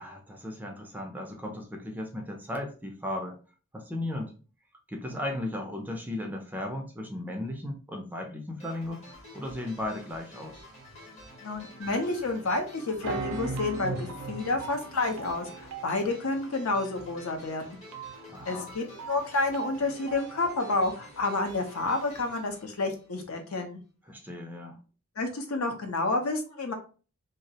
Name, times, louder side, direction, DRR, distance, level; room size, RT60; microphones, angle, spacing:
voice 1, 0.0-3.4 3.7-4.4 4.9-10.6 18.3-18.7 24.1-24.8, left 1 dB, 10° right, 0.3 m, -36 dB
sound 1, 8.6-23.4, equal, 30° left, 0.8 m, -49 dB
voice 2, 11.4-17.8 18.5-23.8 25.2-26.7, left 3 dB, 70° left, 0.6 m, -30 dB
sound 2, 11.8-12.5 13.0-20.5, right 4 dB, 85° right, 0.4 m, -39 dB
2.3 x 2.0 x 2.7 m
head